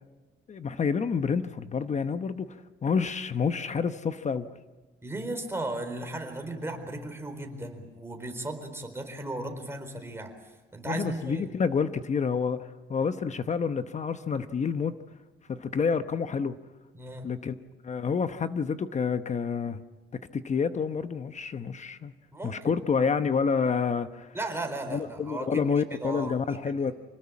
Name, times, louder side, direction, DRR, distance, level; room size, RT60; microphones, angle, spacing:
voice 1, 0.5-4.5 10.9-14.9 15.5-16.6 17.2-17.5 17.8-19.8 20.3-22.1 22.4-24.3 24.9-26.9, left 5 dB, 35° left, 10 dB, 1.0 m, -28 dB
voice 2, 5.0-11.5 16.9-17.3 22.3-22.9 24.3-25.7 26.0-26.3 26.7-26.9, right 2 dB, 10° right, 5 dB, 4.0 m, -36 dB
26.5 x 19.5 x 8.6 m, 1.3 s
cardioid pair, 130°, 20 cm